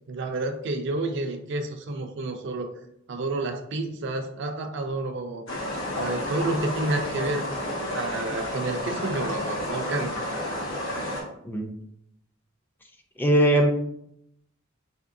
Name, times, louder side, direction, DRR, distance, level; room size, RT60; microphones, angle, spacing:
voice 1, 0.1-2.7 3.1-5.4 5.9-7.4 7.9-10.1 11.1-11.2, right 2 dB, 60° right, 5 dB, 0.4 m, -30 dB
sound 1, 5.5-11.2, left 1 dB, 80° left, 1.2 m, -31 dB
voice 2, 13.2-13.7, right 1 dB, 10° left, 2 dB, 0.3 m, -20 dB
3.5 x 3.0 x 2.6 m, 0.75 s
head